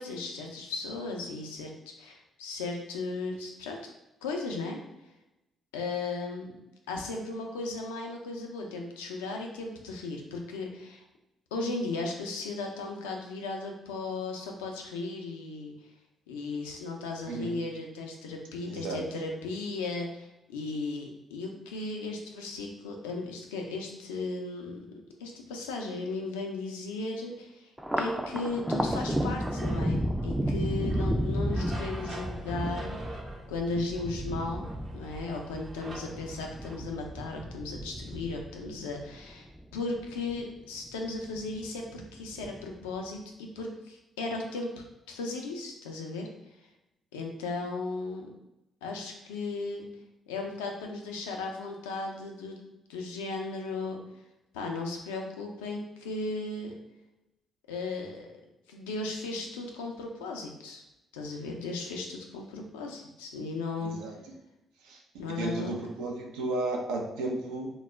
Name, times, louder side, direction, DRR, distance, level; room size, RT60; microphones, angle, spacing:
voice 1, 0.0-1.7 2.0-3.9 4.2-4.8 5.7-6.6 6.9-11.0 11.5-15.7 16.3-24.9 25.2-27.7 28.0-33.0 33.5-34.7 34.9-44.7 45.1-46.3 47.1-48.3 48.8-49.9 50.3-52.6 52.9-54.0 54.5-56.7 57.7-58.3 58.7-60.8 61.1-64.0 65.2-65.8, left 3 dB, 90° left, 2 dB, 0.4 m, -36 dB
voice 2, 17.3-17.6 18.6-19.0 63.8-64.2 64.8-65.0 65.3-67.7, right 2 dB, 80° right, 0 dB, 0.4 m, -33 dB
Thunder, 27.8-40.4 40.8-41.6 42.0-42.8, equal, 10° right, 0.3 m, -33 dB
sound 1, 29.4-36.8, right 2 dB, 60° right, 0.8 m, -46 dB
2.2 x 2.0 x 3.3 m, 0.93 s
hypercardioid pair, 50°, 0 cm